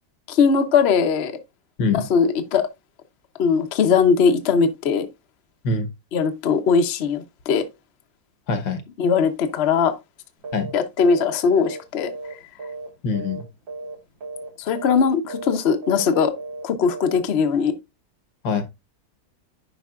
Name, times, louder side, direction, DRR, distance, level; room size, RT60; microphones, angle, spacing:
voice 1, 0.3-1.3 1.9-2.7 3.4-5.1 6.1-7.6 9.0-9.9 10.7-12.1 14.6-16.3 16.6-17.7, left 6 dB, 50° left, 0.8 m, -20 dB
voice 2, 8.5-8.8 10.5-10.7 13.0-13.4 18.4-18.6, left 3 dB, 80° left, 1.8 m, -23 dB
sound 1, 10.4-10.7 11.0-11.3 11.5-12.9 13.1-13.4 13.7-14.0 14.2-14.5 14.7-15.0 15.3-15.6 15.8-16.1 16.4-16.6 16.9-17.2, right 3 dB, 80° right, 3.9 m, -35 dB
10.0 x 5.2 x 2.4 m
omnidirectional pair, 2.0 m